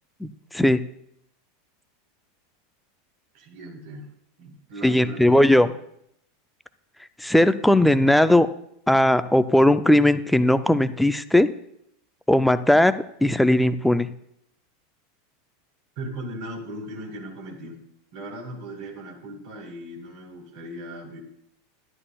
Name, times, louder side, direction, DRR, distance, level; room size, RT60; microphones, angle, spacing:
voice 1, 0.2-0.8 4.8-5.7 7.2-8.5 8.9-11.5 12.3-12.9 13.2-14.1, left 1 dB, 5° left, 13 dB, 0.5 m, -18 dB
voice 2, 3.3-4.1 4.4-5.7 16.0-17.8 18.1-21.2, right 1 dB, 60° right, 0 dB, 4.2 m, -38 dB
12.5 x 11.0 x 2.4 m, 0.74 s
figure-of-eight pair, 85°, 0 cm